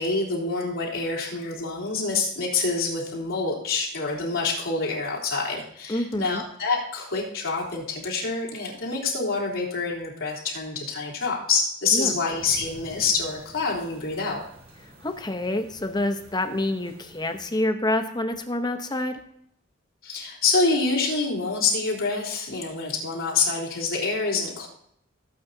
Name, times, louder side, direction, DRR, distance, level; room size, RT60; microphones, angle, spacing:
voice 1, 0.0-14.4 20.0-24.7, left 4 dB, 80° left, -4 dB, 3.4 m, -26 dB
voice 2, 5.9-6.4 11.9-12.1 15.0-19.2, left 1 dB, 20° left, 7 dB, 0.8 m, -27 dB
sound 1, 12.4-17.4, equal, 30° right, 3.1 m, -49 dB
17.5 x 8.6 x 2.7 m, 0.69 s
head